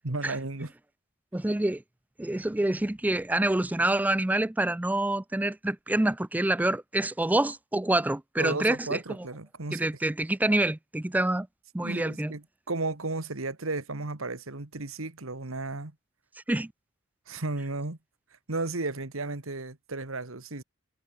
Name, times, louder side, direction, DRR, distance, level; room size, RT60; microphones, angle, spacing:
voice 1, 0.0-0.7 8.4-9.8 11.8-15.9 17.3-18.0 18.5-20.6, right 2 dB, 75° right, 1.9 m, -34 dB
voice 2, 1.3-1.8 2.2-9.0 9.7-11.5 11.7-12.3 16.5-16.7, right 1 dB, 10° right, 0.4 m, -27 dB
head